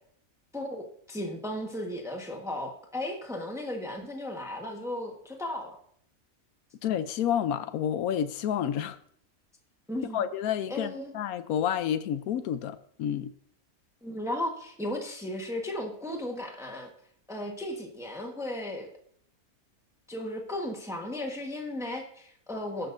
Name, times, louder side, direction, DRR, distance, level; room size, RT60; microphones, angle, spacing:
voice 1, 0.5-5.8 9.9-10.2 10.7-11.1 14.0-16.9 17.3-18.9 20.1-22.9, left 1 dB, ahead, 1.2 m, -35 dB
voice 2, 6.8-9.0 10.1-13.3, left 9 dB, 90° left, 1.1 m, -29 dB
19.0 x 6.4 x 2.6 m
omnidirectional pair, 1.5 m